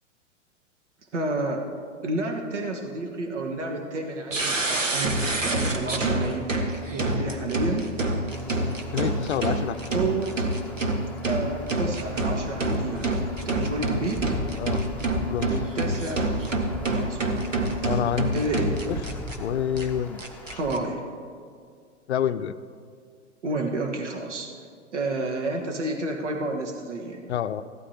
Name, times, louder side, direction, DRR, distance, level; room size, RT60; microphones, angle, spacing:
voice 1, 1.1-1.7 2.0-7.9 9.9-10.4 11.3-13.1 13.4-14.3 15.4-16.3 16.9-17.2 18.3-18.7 20.5-21.0 23.4-24.5 24.9-27.2, right 2 dB, 70° right, 2 dB, 1.5 m, -30 dB
sound 1, 4.3-19.4 19.8-19.9 20.2-20.8, right 2 dB, 85° right, 1.2 m, -27 dB
sound 2, 8.3-20.8, left 1 dB, 5° left, 0.8 m, -39 dB
voice 2, 8.9-9.8 14.6-14.9 15.2-15.6 17.8-18.4 18.8-19.0 19.4-20.2 20.5-20.6 22.1-22.6 27.3-27.6, left 9 dB, 60° left, 12 dB, 0.5 m, -28 dB
16.0 x 12.5 x 2.8 m, 2.2 s
figure-of-eight pair, 110°, 37 cm